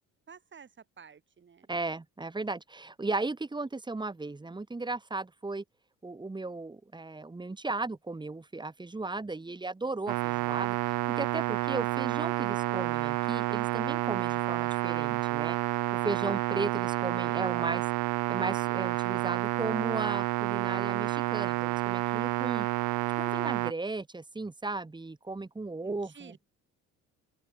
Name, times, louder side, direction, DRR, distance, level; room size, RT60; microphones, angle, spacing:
voice 1, 0.3-1.7 25.8-26.4, right 6 dB, 35° right, 7.9 m, -52 dB
voice 2, 1.7-5.6 6.0-15.6 15.9-17.9 18.3-22.7 23.2-26.3, right 3 dB, 15° right, 2.8 m, -36 dB
sound 1, 10.1-23.7, right 20 dB, 70° right, 0.5 m, -30 dB
open air
cardioid pair, 115°, 32 cm